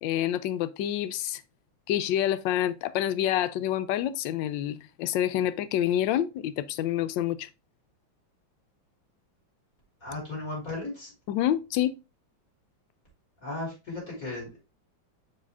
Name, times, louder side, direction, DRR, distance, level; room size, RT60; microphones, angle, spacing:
voice 1, 0.0-1.4 1.9-7.5 11.3-11.9, left 11 dB, 75° left, 1.2 m, -27 dB
voice 2, 10.0-11.1 13.4-14.6, left 2 dB, 45° left, 3.8 m, -36 dB
6.1 x 4.8 x 3.4 m
omnidirectional pair, 2.1 m